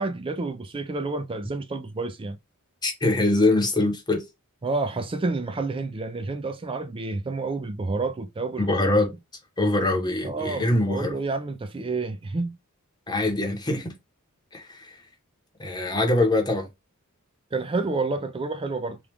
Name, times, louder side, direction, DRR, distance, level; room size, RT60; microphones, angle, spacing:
voice 1, 0.0-2.4 4.6-8.7 10.2-12.6 17.5-19.0, right 3 dB, 25° right, 0.4 m, -29 dB
voice 2, 2.8-4.2 8.6-9.1 9.6-11.2 13.1-13.9 14.5-15.0 15.6-16.7, left 2 dB, 20° left, 0.9 m, -23 dB
3.1 x 2.4 x 3.4 m
head